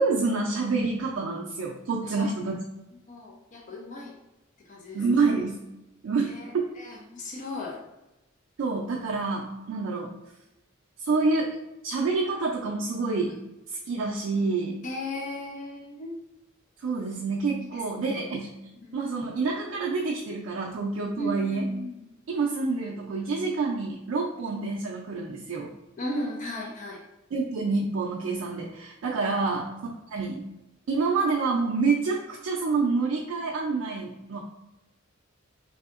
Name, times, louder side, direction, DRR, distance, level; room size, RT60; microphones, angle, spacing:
voice 1, 0.0-2.6 4.9-5.6 6.0-6.7 8.6-10.1 11.0-11.5 11.8-13.4 13.7-14.8 16.8-18.5 18.9-21.7 22.3-25.7 27.3-29.7 30.1-30.4 30.9-34.4, right 4 dB, 85° right, -3 dB, 0.4 m, -27 dB
voice 2, 3.1-4.1 4.7-5.3 6.2-7.8 14.8-16.1 17.6-18.3 18.7-19.0 21.2-22.0 26.0-27.0 29.2-29.4, left 1 dB, 40° left, -1 dB, 0.5 m, -36 dB
3.4 x 2.7 x 2.4 m, 0.95 s
head